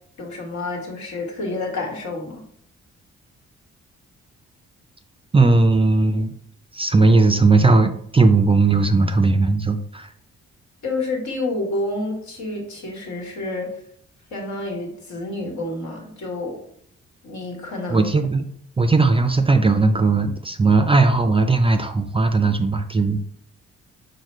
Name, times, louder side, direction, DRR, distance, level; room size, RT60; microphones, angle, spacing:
voice 1, 0.2-2.4 10.8-13.8 14.3-16.6 17.2-18.1, left 2 dB, 70° left, -1 dB, 1.4 m, -29 dB
voice 2, 5.3-6.3 6.7-10.1 17.9-18.5 18.8-23.2, right 3 dB, 20° right, 7 dB, 0.4 m, -17 dB
4.8 x 2.1 x 4.3 m, 0.66 s
cardioid pair, 70°, 29 cm